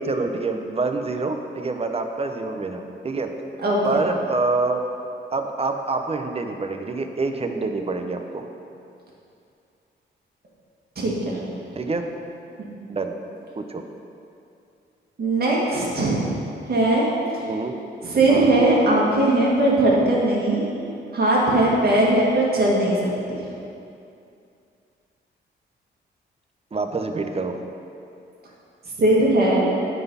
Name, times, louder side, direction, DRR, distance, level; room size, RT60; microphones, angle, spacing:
voice 1, 0.0-3.3 3.8-4.8 5.3-8.5 11.7-12.1 12.9-13.1 13.6-13.8 17.5-17.7 18.3-18.5 26.7-27.6, right 3 dB, 30° right, 5 dB, 0.7 m, -26 dB
voice 2, 3.6-4.0 11.0-11.4 15.2-16.3 16.7-17.1 17.3-17.4 18.0-20.6 21.1-23.0 23.3-23.4 29.0-29.7, right 1 dB, 55° right, -4 dB, 2.1 m, -19 dB
9.2 x 4.1 x 5.6 m, 2.6 s
cardioid pair, 85°, 20 cm